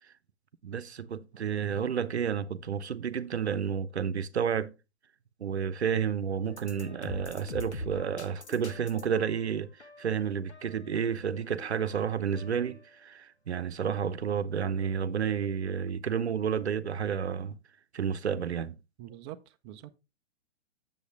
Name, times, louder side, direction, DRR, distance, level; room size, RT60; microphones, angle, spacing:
voice 1, 0.6-4.7 5.4-9.7 10.0-17.6 17.9-18.8, right 7 dB, 75° right, 0.8 m, -31 dB
sound 1, 6.5-12.9, left 1 dB, 85° left, 1.4 m, -44 dB
voice 2, 19.0-20.0, right 13 dB, 25° right, 0.5 m, -45 dB
8.0 x 7.1 x 3.4 m
figure-of-eight pair, 115°, 33 cm